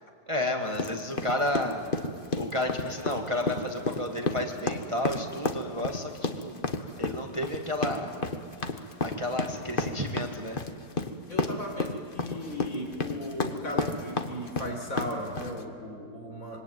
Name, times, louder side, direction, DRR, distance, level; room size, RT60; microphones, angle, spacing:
voice 1, 0.3-1.8 2.4-6.7 7.0-8.1 9.0-10.6, left 1 dB, 20° right, 3 dB, 1.7 m, -31 dB
sound 1, 0.7-15.6, left 3 dB, 35° left, 1.5 m, -31 dB
voice 2, 11.3-16.6, left 1 dB, 55° left, 2 dB, 4.9 m, -36 dB
26.0 x 23.5 x 9.4 m, 2.2 s
omnidirectional pair, 1.8 m